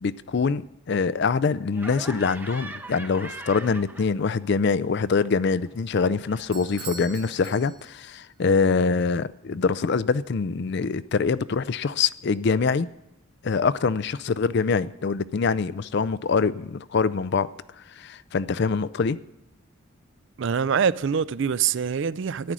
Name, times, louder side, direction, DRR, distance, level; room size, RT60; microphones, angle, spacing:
voice 1, 0.0-12.9 13.4-17.5 18.0-19.2, left 5 dB, 50° left, 0.4 m, -24 dB
Laughter, 1.7-4.5 4.8-7.7, right 2 dB, 10° right, 0.6 m, -43 dB
Bell / Doorbell, 6.5-8.2, right 4 dB, 80° right, 2.1 m, -42 dB
voice 2, 20.4-22.5, right 7 dB, 55° right, 0.4 m, -24 dB
14.0 x 10.5 x 6.2 m
head